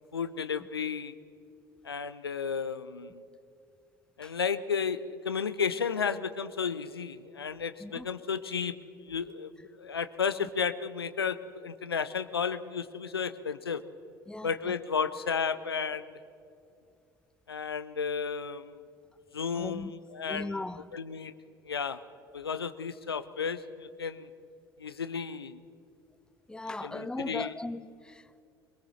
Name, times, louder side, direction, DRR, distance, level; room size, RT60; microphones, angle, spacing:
voice 1, 0.1-1.1 1.8-3.2 4.2-9.5 9.8-13.8 14.4-16.1 17.5-18.8 19.3-20.6 20.9-21.3 21.6-22.0 22.3-24.3 24.8-25.6 26.8-27.5, left 6 dB, 85° left, 0.6 m, -33 dB
voice 2, 14.3-14.7 19.5-19.9 20.3-20.9 26.5-28.4, left 2 dB, 5° left, 0.6 m, -38 dB
22.5 x 21.0 x 6.4 m
figure-of-eight pair, 60°, 12 cm